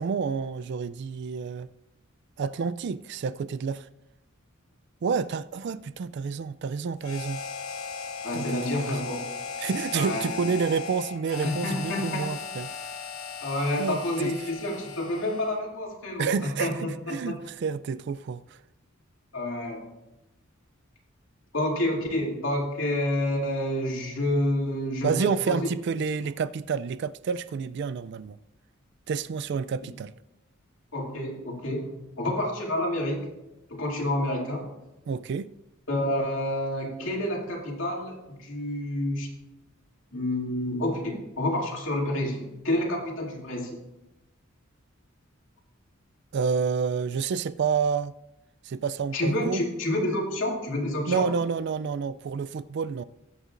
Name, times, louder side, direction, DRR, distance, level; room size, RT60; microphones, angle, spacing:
voice 1, 0.0-1.7 2.4-3.9 5.0-7.4 8.3-9.1 9.6-12.7 13.8-14.4 16.2-18.6 25.0-28.4 29.1-30.1 35.1-35.5 46.3-48.1 48.6-49.6 51.1-53.0, right 5 dB, 55° right, 0.3 m, -29 dB
Harmonica, 7.0-15.6, left 5 dB, 90° left, 1.1 m, -37 dB
voice 2, 8.2-9.3 10.0-10.4 11.4-12.2 13.4-17.3 19.3-19.8 21.5-25.6 30.9-33.2 33.7-34.6 35.9-39.3 40.1-43.8 49.1-51.3, left 1 dB, 65° left, 2.6 m, -29 dB
20.5 x 8.1 x 2.5 m
head